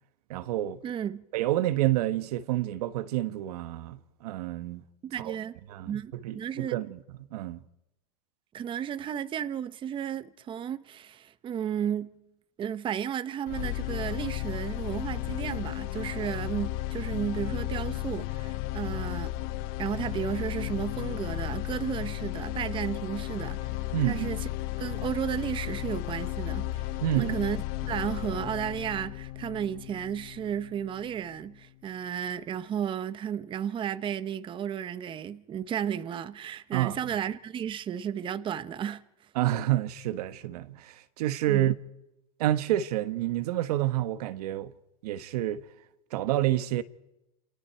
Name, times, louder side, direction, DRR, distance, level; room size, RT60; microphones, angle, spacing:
voice 1, 0.3-0.8 1.3-4.8 5.2-5.4 5.7-7.0 7.3-7.6 23.9-24.3 27.0-27.4 36.7-37.0 39.3-41.7 42.4-44.7 45.0-45.6 46.1-46.8, right 14 dB, 80° right, 1.5 m, -28 dB
voice 2, 0.8-1.2 5.0-5.6 5.9-6.8 8.5-12.2 12.6-19.3 19.8-23.7 24.1-24.5 24.8-27.6 27.8-39.0 41.5-41.7, right 9 dB, 25° right, 0.9 m, -33 dB
sound 1, 13.5-31.5, left 15 dB, 50° left, 0.7 m, -34 dB
29.5 x 28.5 x 4.7 m
supercardioid pair, 140°, 20 cm